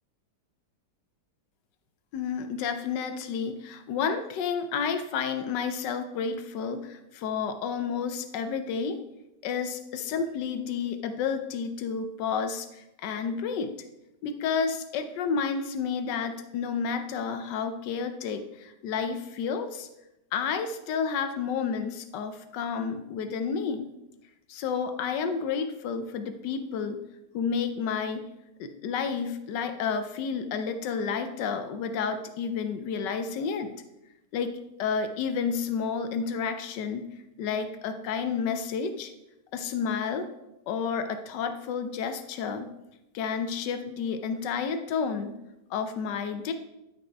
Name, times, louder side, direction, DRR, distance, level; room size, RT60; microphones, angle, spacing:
voice 1, 2.1-9.0 9.4-13.7 14.2-19.9 20.3-23.9 24.5-27.0 27.3-28.2 28.6-33.7 34.3-37.1 37.4-39.1 39.5-40.3 40.7-42.7 43.1-45.4 45.7-46.5, left 6 dB, 85° left, 8 dB, 1.3 m, -30 dB
13.0 x 5.2 x 3.4 m, 0.92 s
omnidirectional pair, 1.8 m